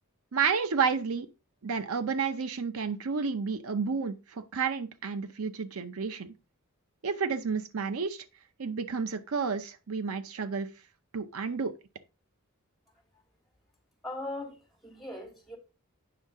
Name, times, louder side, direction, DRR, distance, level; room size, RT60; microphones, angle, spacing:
voice 1, 0.3-1.3 1.6-6.3 7.0-8.2 8.6-10.7 11.1-11.7, right 5 dB, 75° right, 0.7 m, -31 dB
voice 2, 14.0-15.6, left 2 dB, ahead, 3.0 m, -39 dB
9.3 x 6.4 x 3.6 m
head